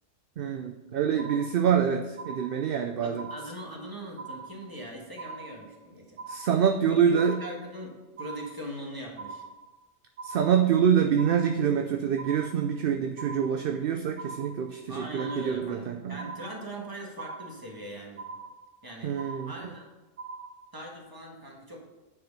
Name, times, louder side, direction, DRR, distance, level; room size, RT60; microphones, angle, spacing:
voice 1, 0.4-3.3 6.3-7.4 10.2-16.2 19.0-19.5, right 8 dB, 60° right, 7 dB, 0.6 m, -26 dB
sound 1, 1.2-1.8 2.2-2.8 3.2-3.8 4.2-4.8 5.2-5.8 6.2-6.8 7.2-7.8 8.2-8.8 9.2-9.8 10.2-10.8 11.2-11.8 12.2-12.8 13.2-13.8 14.2-14.8 15.2-15.8 16.2-16.8 17.2-17.8 18.2-18.8 19.2-19.8 20.2-20.8, right 4 dB, 45° right, 2.2 m, -42 dB
voice 2, 3.0-6.3 6.9-9.5 14.9-18.3 18.8-19.2 19.5-19.9 20.7-21.9, right 1 dB, 15° right, -1 dB, 1.6 m, -41 dB
9.6 x 4.7 x 5.3 m, 1.1 s
omnidirectional pair, 1.3 m